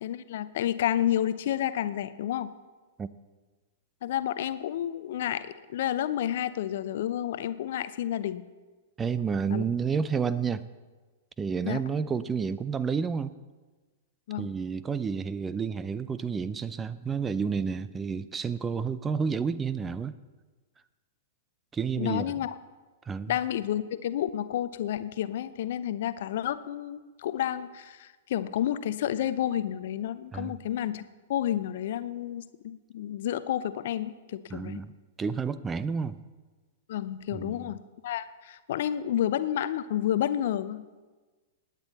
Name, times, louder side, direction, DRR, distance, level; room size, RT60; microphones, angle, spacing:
voice 1, 0.0-2.5 4.0-8.4 9.5-9.7 11.6-11.8 14.3-14.5 22.0-22.6 23.3-31.0 31.3-34.8 36.9-40.8, left 11 dB, 60° left, 14 dB, 0.6 m, -30 dB
voice 2, 9.0-10.6 11.4-13.3 14.4-20.2 21.7-22.3 23.1-23.3 30.3-30.6 34.5-34.9 35.2-36.2 37.3-37.7, right 6 dB, 15° right, 15 dB, 0.5 m, -30 dB
19.5 x 9.2 x 4.1 m, 1.3 s
figure-of-eight pair, 105°, 0 cm